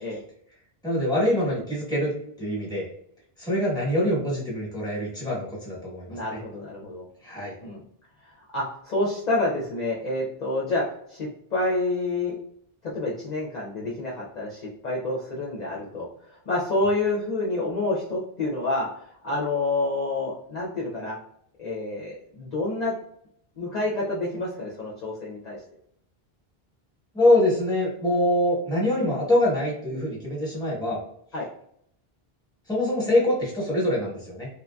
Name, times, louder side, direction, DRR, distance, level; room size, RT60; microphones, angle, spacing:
voice 1, 0.8-2.1 2.4-2.9 3.4-6.4 7.2-7.5 27.1-31.0 32.7-34.5, left 1 dB, 5° left, -6 dB, 1.0 m, -24 dB
voice 2, 6.1-7.0 7.6-7.8 8.2-10.8 11.1-12.3 12.8-18.9 19.2-21.2 21.6-22.9 23.6-25.6 31.3-31.4, left 2 dB, 50° left, -5 dB, 0.6 m, -28 dB
3.0 x 2.5 x 2.2 m, 0.69 s
omnidirectional pair, 1.0 m